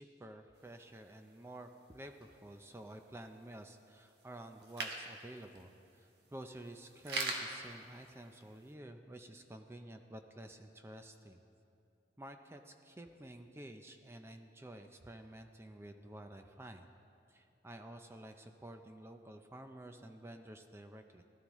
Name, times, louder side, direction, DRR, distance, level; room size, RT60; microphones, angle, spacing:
voice 1, 0.0-11.4 12.2-16.9 17.3-21.2, right 1 dB, 15° right, 6 dB, 0.4 m, -51 dB
sound 1, 0.6-8.7, right 3 dB, 65° right, 1.3 m, -46 dB
17.0 x 13.0 x 3.1 m, 2.7 s
head